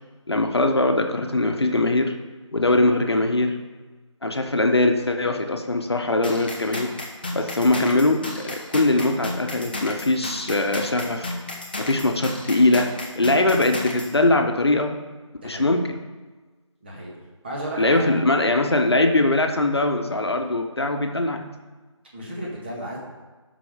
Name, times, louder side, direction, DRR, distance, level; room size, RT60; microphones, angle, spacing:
voice 1, 0.3-2.1 2.5-3.6 4.2-6.9 7.3-11.3 11.8-14.9 15.4-16.0 17.8-21.5, left 2 dB, 55° left, 5 dB, 1.3 m, -21 dB
sound 1, 6.2-14.1, left 2 dB, 20° left, 0.9 m, -33 dB
voice 2, 15.4-15.7 16.8-17.1 17.4-18.2 22.1-23.0, right 1 dB, 20° right, -4 dB, 2.0 m, -33 dB
12.0 x 6.2 x 5.1 m, 1.3 s
figure-of-eight pair, 170°, 16 cm